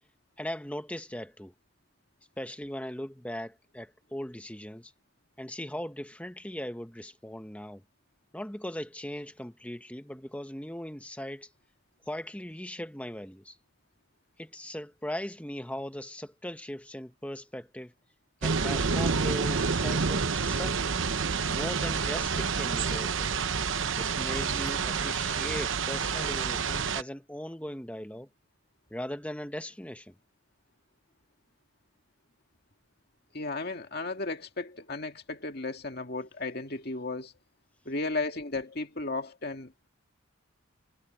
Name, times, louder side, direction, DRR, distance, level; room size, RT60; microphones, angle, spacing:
voice 1, 0.4-1.5 2.4-4.9 5.4-7.8 8.3-11.5 12.0-13.6 14.4-17.9 18.4-20.9 21.5-23.3 24.0-28.3 28.9-30.2, left 1 dB, 5° left, 1.2 m, -39 dB
sound 1, 18.4-27.0, right 5 dB, 65° right, 0.9 m, -28 dB
voice 2, 33.3-37.3 37.9-39.7, left 3 dB, 50° left, 2.1 m, -34 dB
head